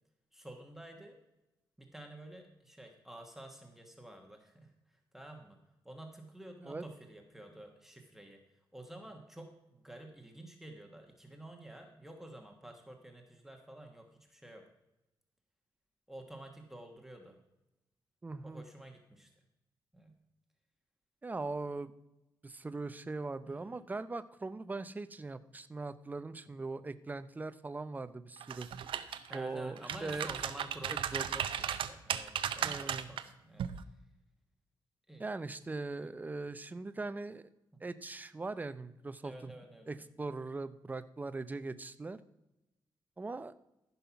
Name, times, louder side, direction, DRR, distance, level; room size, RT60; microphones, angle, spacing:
voice 1, 0.3-1.2 1.8-5.6 5.8-8.4 8.7-14.7 16.1-17.4 18.4-19.3 19.9-20.2 23.4-23.6 29.3-33.7 35.1-35.3 36.0-36.1 37.7-37.8 39.2-39.9, right 1 dB, 5° right, 2 dB, 1.3 m, -50 dB
voice 2, 18.2-18.6 21.2-21.9 22.4-28.7 29.3-30.3 30.9-31.2 32.6-33.1 35.2-37.4 37.8-39.5 39.9-42.2 43.2-43.5, right 3 dB, 20° right, 13 dB, 0.6 m, -40 dB
sound 1, 28.4-29.4 29.8-33.2 33.6-33.8, right 9 dB, 85° right, 0.6 m, -35 dB
14.5 x 5.6 x 5.8 m, 0.94 s
wide cardioid pair, 125°, 9 cm